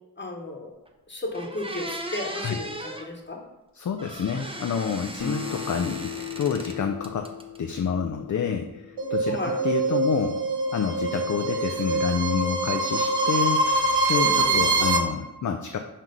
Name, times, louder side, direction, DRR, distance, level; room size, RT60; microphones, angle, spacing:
voice 1, 0.2-0.7 1.1-3.4 9.3-9.6 14.1-14.9, left 1 dB, 25° left, 1 dB, 1.1 m, -34 dB
sound 1, 0.9-1.0 1.3-3.1 4.0-6.8 7.0-7.8, right 1 dB, 15° right, 0.6 m, -37 dB
voice 2, 3.7-7.3 7.6-10.4 10.7-13.6 14.1-15.8, left 7 dB, 50° left, 5 dB, 0.4 m, -28 dB
Acoustic guitar, 5.2-10.0, left 7 dB, 80° left, 1.7 m, -38 dB
sound 2, 9.0-15.0, right 2 dB, 85° right, 0.8 m, -24 dB
5.7 x 3.1 x 5.2 m, 1.1 s
wide cardioid pair, 90°, 40 cm